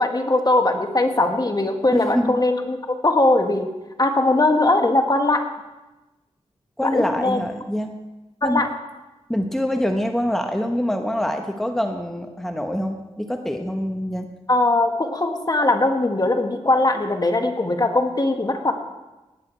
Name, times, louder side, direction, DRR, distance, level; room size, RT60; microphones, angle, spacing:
voice 1, 0.0-3.7 4.0-5.4 6.8-7.4 8.4-8.7 14.5-18.7, left 2 dB, 35° left, 5 dB, 1.5 m, -20 dB
voice 2, 1.9-2.4 6.8-8.0 8.4-8.7 9.3-14.3, equal, 5° left, 4 dB, 1.1 m, -25 dB
18.5 x 8.7 x 4.5 m, 1.1 s
cardioid pair, 60°, 12 cm